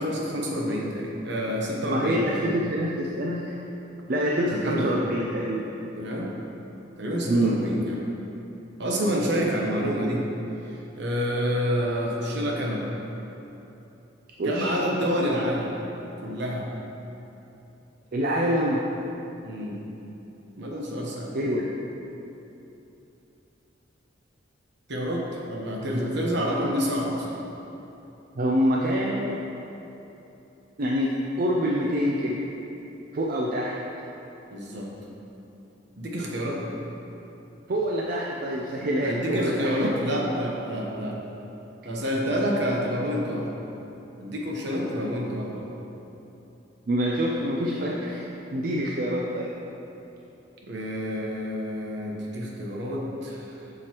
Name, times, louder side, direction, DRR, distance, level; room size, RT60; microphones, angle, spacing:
voice 1, 0.0-2.5 4.5-5.0 6.0-6.3 7.0-7.9 8.8-10.2 11.0-12.9 14.4-15.7 16.2-16.7 19.4-19.8 20.6-21.3 24.9-27.4 34.5-34.9 36.0-36.6 39.0-41.2 41.8-43.6 44.2-45.7 50.6-53.5, equal, 65° right, -2 dB, 1.0 m, -28 dB
voice 2, 1.8-3.5 4.1-5.7 7.3-7.6 14.4-14.8 18.1-18.9 21.3-21.7 28.4-29.4 30.8-32.4 33.1-33.8 37.7-39.9 46.9-48.2 48.5-49.5, equal, 50° right, -2 dB, 0.5 m, -26 dB
7.3 x 6.3 x 3.0 m, 3.0 s
head